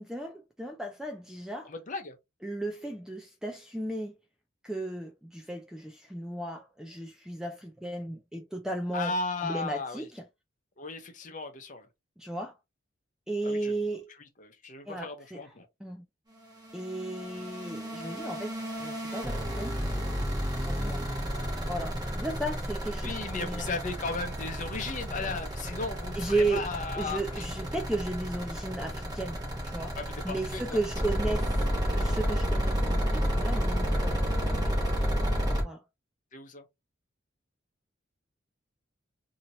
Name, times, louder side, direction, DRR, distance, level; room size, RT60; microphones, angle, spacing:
voice 1, 0.0-1.7 2.4-4.2 4.6-9.1 9.4-10.2 12.2-12.5 13.3-14.1 14.9-15.4 15.8-16.0 16.7-19.8 20.6-21.1 21.7-23.7 26.1-26.7 27.0-29.4 29.6-29.9 30.2-31.7 31.9-34.9 35.6-35.8, right 2 dB, 5° right, 0.3 m, -35 dB
voice 2, 1.6-2.1 8.9-10.1 10.8-11.9 13.4-13.8 14.4-15.7 23.0-27.4 30.0-30.8 36.3-36.6, left 3 dB, 40° left, 0.8 m, -36 dB
sound 1, 16.3-35.6, equal, 20° right, 1.1 m, -31 dB
2.8 x 2.8 x 2.7 m
head